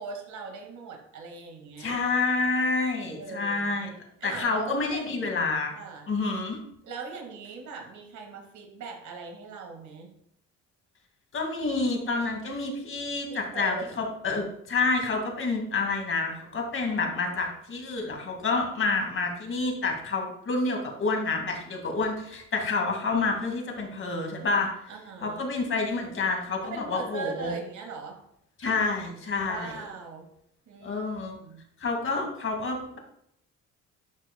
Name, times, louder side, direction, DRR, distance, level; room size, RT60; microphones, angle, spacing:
voice 1, 0.0-2.0 3.1-3.8 4.2-5.2 5.8-6.1 6.8-10.1 13.3-14.0 24.9-25.5 26.6-28.2 29.4-30.3 30.7-31.6, right 4 dB, 70° right, 2 dB, 1.9 m, -40 dB
voice 2, 1.8-3.9 4.2-5.7 6.1-6.6 11.3-24.7 25.2-27.5 28.6-29.7 30.8-31.4 31.8-33.0, left 3 dB, 45° left, 2 dB, 2.0 m, -28 dB
11.0 x 6.2 x 2.2 m, 0.73 s
cardioid pair, 90°, 30 cm